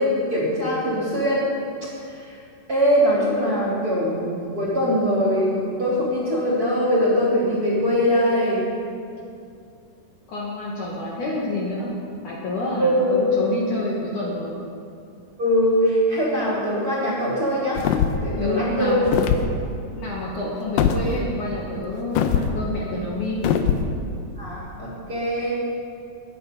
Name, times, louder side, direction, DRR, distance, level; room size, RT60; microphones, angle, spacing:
voice 1, 0.0-1.5 2.1-2.4 2.7-8.6 12.8-13.2 15.4-17.8 18.2-19.0 24.4-25.5, equal, 25° right, -6 dB, 3.2 m, -22 dB
voice 2, 10.3-11.9 12.2-14.5 18.4-19.1 19.9-23.5, left 2 dB, 60° left, -4 dB, 2.7 m, -28 dB
sound 1, 17.8-18.3 19.1-19.5 20.8-21.0 22.2-22.5 23.4-23.9, left 9 dB, 80° left, 2.0 m, -21 dB
21.5 x 8.9 x 5.4 m, 2.5 s
omnidirectional pair, 4.7 m